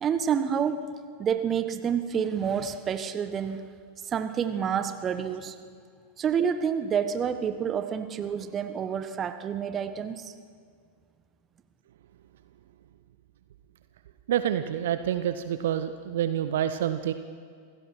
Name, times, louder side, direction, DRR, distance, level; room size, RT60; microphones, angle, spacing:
voice 1, 0.0-0.9 1.2-3.7 4.1-5.5 6.2-10.3, right 7 dB, 25° right, 10 dB, 1.3 m, -28 dB
voice 2, 14.3-17.1, right 10 dB, 60° right, 11 dB, 0.7 m, -27 dB
26.5 x 16.5 x 6.0 m, 2.1 s
figure-of-eight pair, 90°, 0 cm